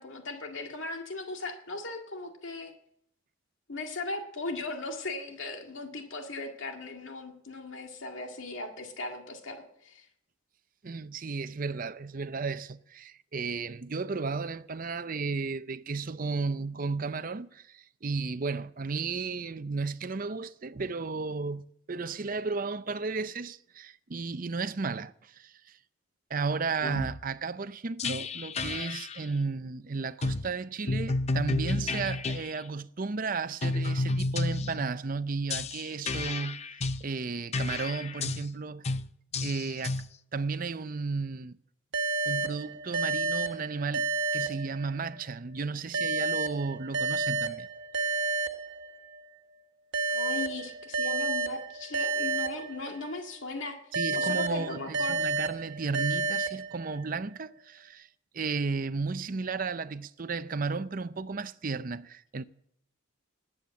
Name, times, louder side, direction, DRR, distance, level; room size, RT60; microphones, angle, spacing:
voice 1, 0.0-2.7 3.7-10.1 50.1-53.8 54.2-55.3, left 2 dB, 70° left, 2.0 m, -38 dB
voice 2, 10.8-25.8 26.3-36.6 37.0-38.8 39.4-40.0 40.3-41.6 42.3-44.1 44.3-47.7 53.9-58.1 58.3-62.5, right 4 dB, 40° right, 0.6 m, -34 dB
sound 1, 26.8-27.2 28.0-29.2 30.2-30.5 30.9-32.5 33.6-34.9 35.5-37.1 37.5-38.5 38.8-39.1 39.3-40.1, left 2 dB, 30° left, 0.5 m, -31 dB
sound 2, 41.9-45.3 45.9-49.3 49.9-53.3 53.9-57.3, right 4 dB, 60° right, 1.4 m, -31 dB
20.0 x 8.7 x 7.6 m
head